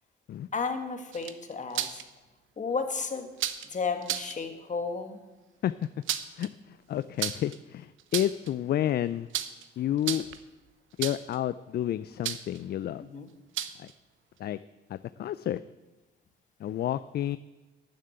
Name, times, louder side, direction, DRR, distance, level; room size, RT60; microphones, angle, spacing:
voice 1, 0.5-2.0 2.6-3.3 3.7-5.2 13.0-13.3, left 4 dB, 40° left, 6 dB, 1.8 m, -33 dB
sound 1, 1.1-2.0 3.4-3.7 4.0-4.3 5.8-6.5 7.2-7.6 8.0-8.5 9.3-9.6 10.0-10.4 11.0-11.4 12.2-12.6 13.5-13.9, right 11 dB, 80° right, 0.8 m, -33 dB
voice 2, 6.4-9.3 9.8-10.2 11.0-13.0 13.8-13.9 14.4-14.6 14.9-15.6 16.6-17.4, left 11 dB, 55° left, 15 dB, 0.4 m, -30 dB
12.5 x 7.4 x 8.8 m, 1.1 s
cardioid pair, 90°, 20 cm